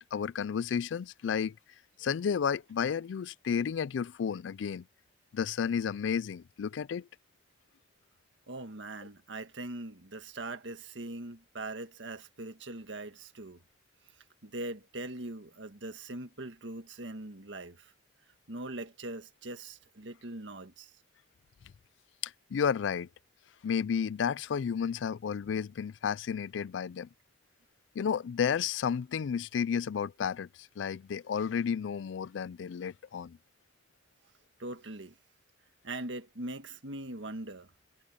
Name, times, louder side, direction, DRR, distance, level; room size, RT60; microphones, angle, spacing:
voice 1, 0.1-1.6 2.0-4.8 5.3-7.1 22.2-23.1 23.6-27.1 28.0-30.5 30.8-33.4, left 7 dB, 90° left, 0.4 m, -32 dB
voice 2, 8.5-13.6 14.4-17.9 18.5-20.9 34.6-35.2 35.8-37.7, right 2 dB, 85° right, 1.6 m, -41 dB
head